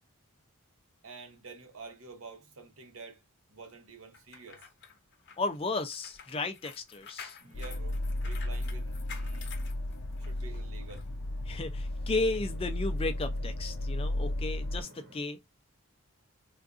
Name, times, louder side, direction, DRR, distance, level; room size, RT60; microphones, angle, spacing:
voice 1, 1.0-3.2 3.5-4.7 7.4-9.5 10.2-11.4, right 4 dB, 70° right, 0.9 m, -49 dB
sound 1, 4.1-10.4 10.9-11.0, left 7 dB, 50° left, 0.7 m, -49 dB
voice 2, 5.4-7.4 11.5-15.4, left 3 dB, 25° left, 0.4 m, -34 dB
sound 2, 7.4-15.2, equal, 45° right, 0.8 m, -57 dB
sound 3, 7.5-14.8, left 1 dB, 85° left, 0.6 m, -34 dB
3.7 x 2.4 x 2.4 m
head